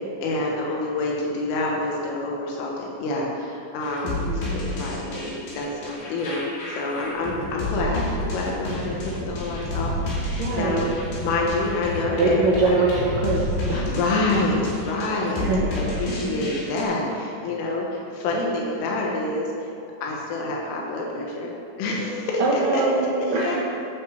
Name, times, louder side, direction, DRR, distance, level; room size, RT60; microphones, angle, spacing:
voice 1, 0.2-4.2 4.8-10.9 11.2-12.9 13.7-15.5 15.8-19.7 20.0-22.8 23.2-23.6, left 2 dB, 85° left, -2 dB, 4.0 m, -27 dB
sound 1, 3.8-16.8, left 2 dB, 55° left, 4.2 m, -31 dB
voice 2, 4.0-4.6 7.9-8.4 10.4-10.9 12.2-13.8 15.3-15.7 16.2-16.6 22.4-23.6, right 3 dB, 80° right, -4 dB, 1.9 m, -24 dB
sound 2, 7.0-13.8, right 1 dB, 50° right, 2.4 m, -35 dB
10.5 x 9.2 x 6.4 m, 2.7 s
omnidirectional pair, 5.6 m